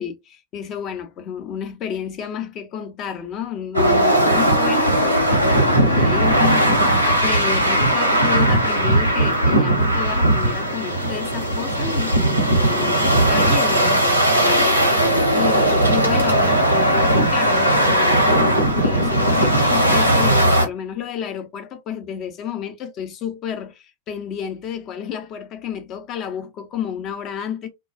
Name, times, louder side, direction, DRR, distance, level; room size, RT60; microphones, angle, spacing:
voice 1, 0.0-14.0 14.4-27.7, left 8 dB, 35° left, 0.6 m, -30 dB
sound 1, 3.7-20.7, right 1 dB, 90° right, 0.7 m, -18 dB
2.3 x 2.2 x 2.5 m
figure-of-eight pair, 90°, 0 cm